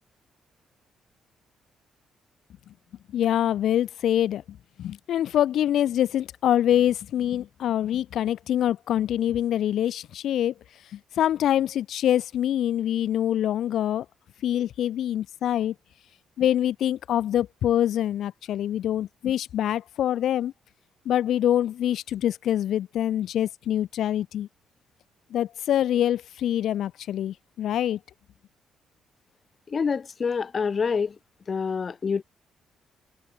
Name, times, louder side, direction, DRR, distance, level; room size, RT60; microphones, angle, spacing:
voice 1, 3.1-10.5 10.9-14.0 14.4-15.7 16.4-20.5 21.1-24.5 25.3-28.0, left 11 dB, 75° left, 2.5 m, -25 dB
voice 2, 29.7-31.1 31.5-32.2, left 5 dB, 40° left, 2.5 m, -26 dB
cardioid pair, 90°, 0 cm